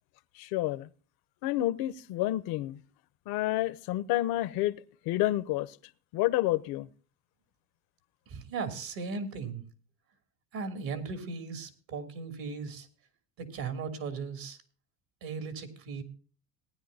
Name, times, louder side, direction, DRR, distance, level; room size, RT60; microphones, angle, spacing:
voice 1, 0.4-0.9 1.4-2.8 3.3-4.8 5.1-5.8 6.1-6.9, left 15 dB, 65° left, 0.9 m, -29 dB
voice 2, 8.3-9.6 10.5-12.9 13.4-14.6 15.2-16.0, right 4 dB, 60° right, 2.9 m, -37 dB
18.5 x 10.0 x 2.7 m
supercardioid pair, 95°, 39 cm